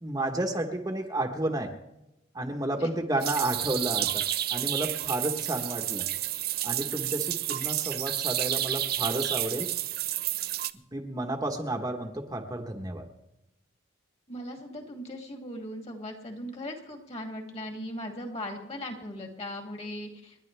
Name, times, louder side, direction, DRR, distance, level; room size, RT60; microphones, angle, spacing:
voice 1, 0.0-1.7 2.3-4.3 4.5-6.1 6.6-9.7 10.9-13.1, right 1 dB, 20° right, 2 dB, 1.2 m, -31 dB
sound 1, 3.2-10.7, right 13 dB, 50° right, 0.5 m, -30 dB
voice 2, 14.3-20.4, left 1 dB, 35° left, 3 dB, 2.6 m, -38 dB
30.0 x 10.5 x 3.4 m, 0.93 s
head